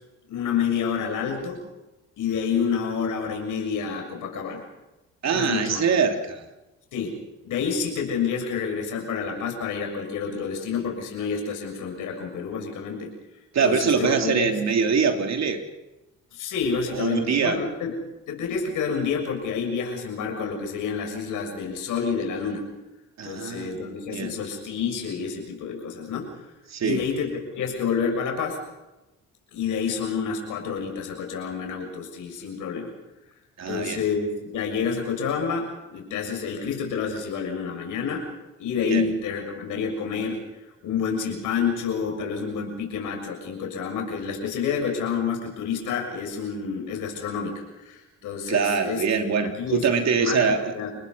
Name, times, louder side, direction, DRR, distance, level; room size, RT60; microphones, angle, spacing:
voice 1, 0.3-1.6 2.2-4.6 5.3-5.8 6.9-7.1 7.4-13.1 13.6-14.5 16.3-18.0 18.3-22.6 23.2-26.3 26.8-28.6 29.5-32.9 33.7-38.3 38.6-40.4 40.8-49.0 49.5-51.0, left 6 dB, 85° left, 2 dB, 6.8 m, -28 dB
voice 2, 5.2-6.4 13.5-15.6 16.9-17.6 23.2-24.3 26.7-27.0 33.6-34.0 38.8-39.0 48.5-50.7, right 5 dB, 60° right, 5 dB, 3.2 m, -24 dB
29.5 x 20.5 x 5.5 m, 1.0 s
cardioid pair, 90°, 30 cm